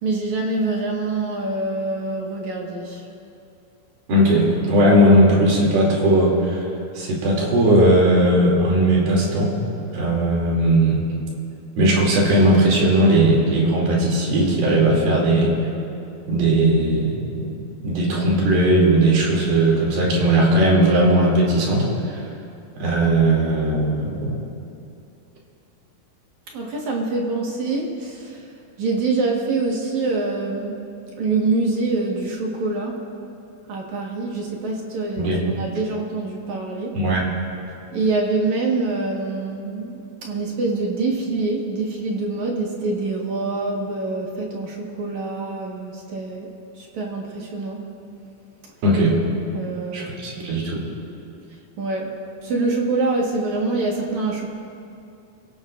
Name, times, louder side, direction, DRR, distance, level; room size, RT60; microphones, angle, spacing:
voice 1, 0.0-3.1 26.5-28.5 28.8-30.8 31.2-33.0 33.7-37.0 37.9-47.9 49.5-50.5 51.8-52.1 52.4-54.5, right 3 dB, 60° right, -1 dB, 2.7 m, -25 dB
voice 2, 4.1-6.6 7.0-9.5 9.9-11.0 11.8-15.5 16.3-17.5 17.8-21.9 22.8-24.4 35.2-35.4 36.9-37.3 48.8-49.2 49.9-50.8, right 1 dB, 80° right, -3 dB, 4.7 m, -18 dB
28.5 x 17.0 x 2.6 m, 2.6 s
omnidirectional pair, 4.2 m